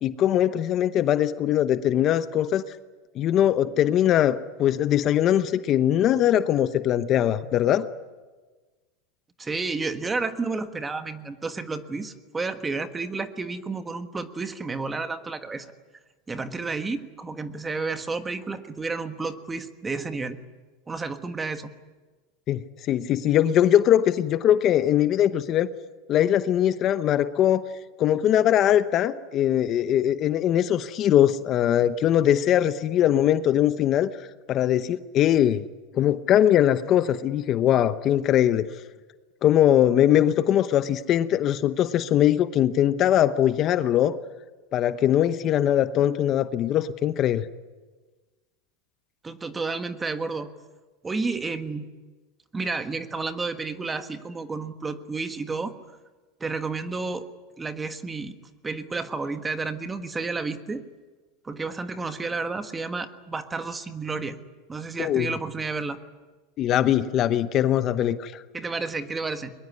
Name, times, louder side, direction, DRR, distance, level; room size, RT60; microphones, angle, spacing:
voice 1, 0.0-2.6 3.1-7.9 22.5-25.7 26.1-27.6 28.0-35.7 35.9-38.7 39.4-44.2 44.7-47.5 65.0-65.3 66.6-68.4, left 11 dB, 40° left, 12 dB, 0.9 m, -21 dB
voice 2, 9.4-15.7 16.3-20.4 20.9-21.7 49.2-50.5 51.0-51.9 52.5-55.8 56.4-57.3 57.6-58.3 58.6-60.8 61.4-64.4 64.7-66.0 68.5-69.5, right 4 dB, 15° right, 9 dB, 1.5 m, -31 dB
22.0 x 22.0 x 9.8 m, 1.3 s
supercardioid pair, 135°, 0 cm